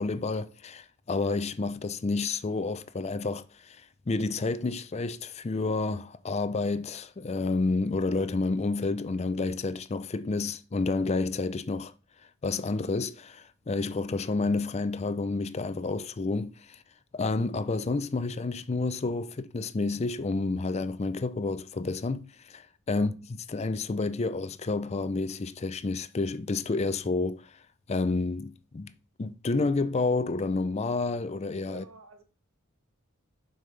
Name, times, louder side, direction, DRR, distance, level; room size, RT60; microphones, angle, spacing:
voice 1, 0.0-11.9 12.4-16.8 17.1-23.1 23.5-27.6 27.9-28.9 29.2-31.8, left 3 dB, 30° left, 0.4 m, -30 dB
voice 2, 31.7-32.2, right 5 dB, 80° right, 1.4 m, -48 dB
7.6 x 5.5 x 3.2 m
head